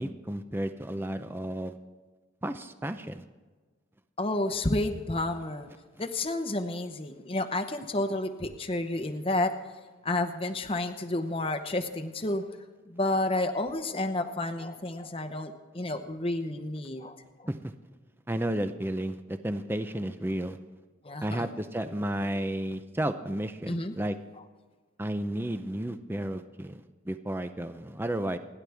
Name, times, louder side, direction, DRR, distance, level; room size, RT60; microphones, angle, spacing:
voice 1, 0.0-1.8 2.4-3.2 17.5-17.7 18.3-20.6 21.2-24.2 25.0-26.8 27.1-28.4, right 1 dB, 10° right, 9 dB, 0.5 m, -32 dB
voice 2, 4.2-5.7 6.0-9.5 10.0-12.4 12.9-17.5 21.0-21.5 23.7-23.9, left 2 dB, 30° left, 7 dB, 0.9 m, -30 dB
28.5 x 11.0 x 3.5 m, 1.4 s
head